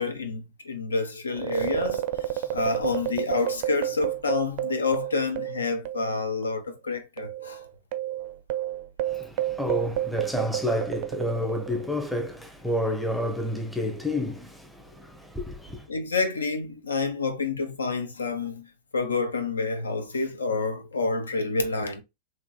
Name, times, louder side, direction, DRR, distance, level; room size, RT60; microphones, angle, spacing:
voice 1, 0.0-2.0 2.3-7.6 15.9-22.0, left 3 dB, 75° left, 0.6 m, -28 dB
sound 1, 1.3-6.2 6.4-6.6 7.2-11.9, right 13 dB, 45° right, 0.4 m, -31 dB
voice 2, 9.0-15.9, left 1 dB, ahead, 0.7 m, -30 dB
3.8 x 2.7 x 2.3 m
figure-of-eight pair, 90°, 0 cm